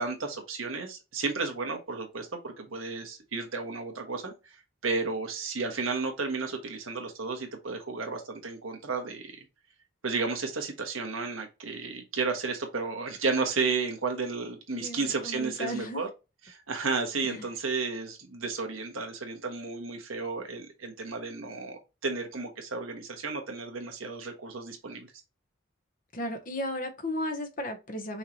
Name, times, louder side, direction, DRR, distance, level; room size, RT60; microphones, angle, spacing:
voice 1, 0.0-4.6 4.8-9.4 10.0-16.1 16.5-25.1, right 4 dB, 90° right, 1.4 m, -33 dB
voice 2, 14.7-16.0 17.2-17.5 26.1-28.2, left 1 dB, 45° left, 1.1 m, -35 dB
5.6 x 3.2 x 2.8 m
head